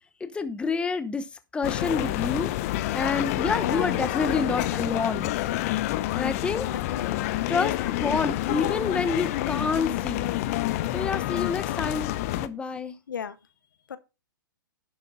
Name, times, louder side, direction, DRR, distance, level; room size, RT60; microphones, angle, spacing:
voice 1, 0.2-1.3 1.5-2.5 2.9-5.3 6.1-6.7 7.5-10.3 10.9-12.9, left 4 dB, 10° left, 0.9 m, -28 dB
sound 1, 1.6-12.5, left 15 dB, 45° left, 0.8 m, -28 dB
voice 2, 3.6-4.4 6.7-7.6 13.1-13.4 13.9-14.0, left 7 dB, 70° left, 1.2 m, -37 dB
10.5 x 8.0 x 4.0 m
figure-of-eight pair, 120°, 11 cm